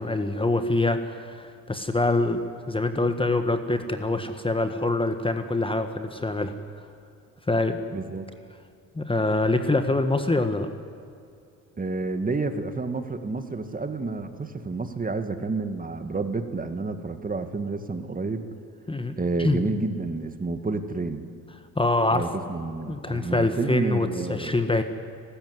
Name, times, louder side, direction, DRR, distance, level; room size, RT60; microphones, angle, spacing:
voice 1, 0.0-2.4 2.7-6.5 6.8-6.9 7.5-7.8 8.9-10.7 18.9-19.6 21.7-22.2 22.9-24.8, left 2 dB, 15° left, 8 dB, 1.5 m, -25 dB
voice 2, 7.9-8.3 11.8-18.4 19.2-21.2 22.1-24.7, right 3 dB, 25° right, 8 dB, 2.0 m, -30 dB
29.0 x 13.5 x 9.7 m, 2.4 s
cardioid pair, 90°, 36 cm